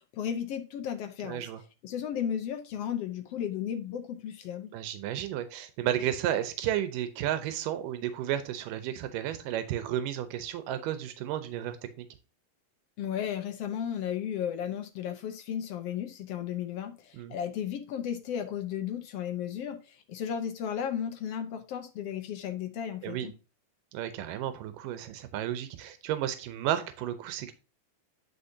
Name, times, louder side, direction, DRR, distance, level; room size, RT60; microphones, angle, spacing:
voice 1, 0.1-1.5 1.8-4.7 13.0-23.3, left 9 dB, 70° left, 1.5 m, -34 dB
voice 2, 1.2-1.6 4.7-12.1 17.1-17.4 23.0-23.3 23.9-27.5, right 11 dB, 90° right, 2.4 m, -33 dB
10.0 x 5.2 x 2.7 m
omnidirectional pair, 3.7 m